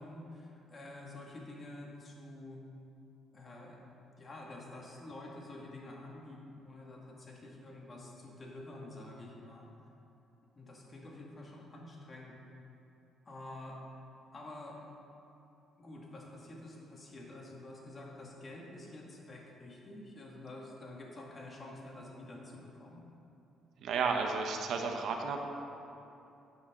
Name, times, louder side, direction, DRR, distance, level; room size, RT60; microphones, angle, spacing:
voice 1, 0.0-2.6 3.3-3.8 4.2-9.7 10.6-12.4 13.2-13.8 14.3-14.8 15.8-23.0, left 2 dB, 35° left, -2 dB, 2.2 m, -48 dB
voice 2, 23.8-25.4, right 5 dB, 70° right, 3 dB, 1.0 m, -32 dB
12.0 x 8.0 x 3.9 m, 2.8 s
cardioid pair, 85°, 0 cm